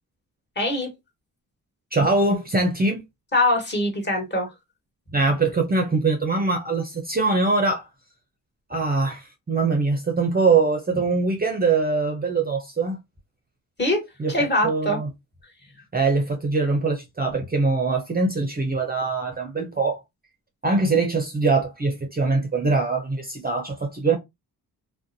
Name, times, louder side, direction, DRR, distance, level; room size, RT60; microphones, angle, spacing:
voice 1, 0.5-0.9 3.3-4.5 13.8-14.0 14.3-15.0, left 1 dB, 25° left, 1.3 m, -22 dB
voice 2, 1.9-3.0 5.1-7.9 8.7-13.0 14.2-14.3 14.6-15.1 15.9-20.0 20.6-24.2, right 3 dB, 25° right, 0.6 m, -22 dB
2.5 x 2.1 x 2.6 m
supercardioid pair, 55°, 38 cm